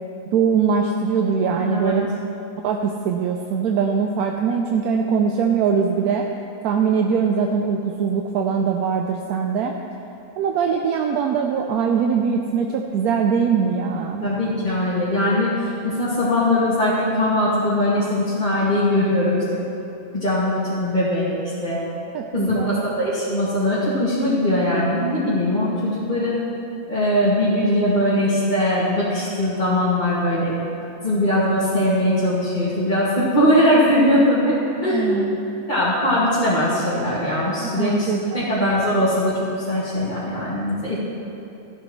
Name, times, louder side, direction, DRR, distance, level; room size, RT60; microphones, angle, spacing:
voice 1, 0.3-2.1 2.6-6.3 6.6-9.8 10.4-14.3 22.1-22.8 34.9-35.4 37.6-38.7, right 6 dB, 75° right, 2 dB, 1.1 m, -22 dB
voice 2, 1.6-2.0 14.2-19.6 20.1-21.3 21.6-21.8 22.3-26.4 26.9-30.5 31.0-35.1 35.7-38.1 38.3-41.0, left 1 dB, 30° left, -11 dB, 2.2 m, -20 dB
14.0 x 11.5 x 3.1 m, 2.9 s
omnidirectional pair, 1.6 m